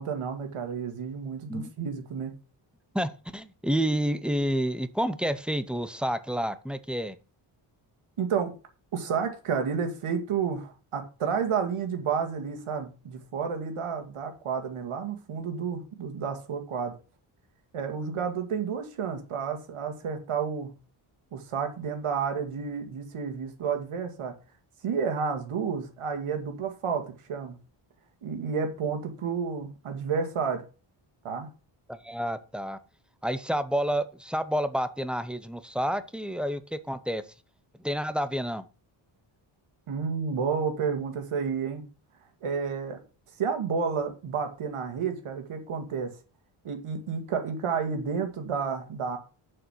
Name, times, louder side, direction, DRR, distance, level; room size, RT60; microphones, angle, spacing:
voice 1, 0.0-2.4 8.2-8.5 8.9-17.0 17.7-20.7 21.3-24.3 24.8-27.6 28.2-30.6 31.2-31.5 39.9-41.8 42.4-43.0 43.4-46.1 46.6-49.2, right 6 dB, 90° right, 2.2 m, -31 dB
voice 2, 2.9-7.2 31.9-32.8 33.2-37.2 37.8-38.7, equal, ahead, 0.6 m, -29 dB
6.9 x 6.8 x 5.9 m
wide cardioid pair, 170°, 49 cm